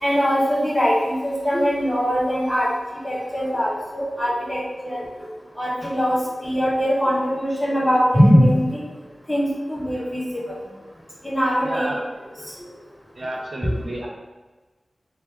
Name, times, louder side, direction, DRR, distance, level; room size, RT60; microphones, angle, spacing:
voice 1, 0.0-2.7 3.0-5.1 5.6-8.8 9.3-10.6 11.2-11.9 12.4-12.5, equal, 10° left, -6 dB, 1.1 m, -21 dB
voice 2, 11.6-12.0 13.2-14.1, right 1 dB, 50° right, -2 dB, 0.6 m, -30 dB
3.0 x 3.0 x 3.6 m, 1.2 s
wide cardioid pair, 90°, 0 cm